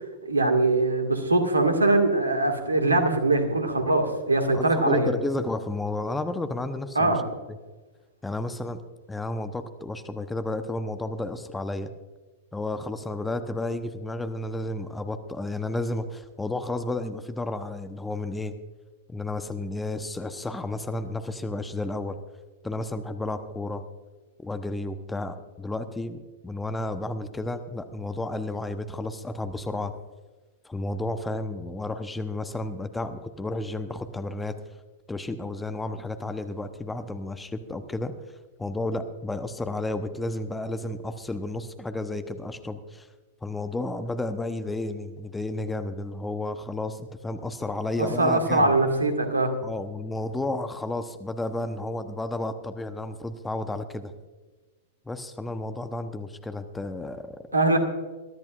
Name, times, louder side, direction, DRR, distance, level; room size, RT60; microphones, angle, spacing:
voice 1, 0.3-5.1 7.0-7.2 48.0-49.5 57.5-57.8, right 2 dB, 80° right, 5 dB, 2.0 m, -22 dB
voice 2, 4.5-7.2 7.5-7.6 8.2-8.8 9.1-11.9 12.5-18.5 19.1-22.2 22.6-23.8 24.4-29.9 30.6-34.6 35.1-38.1 38.6-43.1 43.4-48.7 49.6-54.1 55.1-57.4, left 2 dB, 10° left, 10 dB, 0.9 m, -32 dB
22.5 x 13.5 x 2.5 m, 1.3 s
figure-of-eight pair, 95°, 0 cm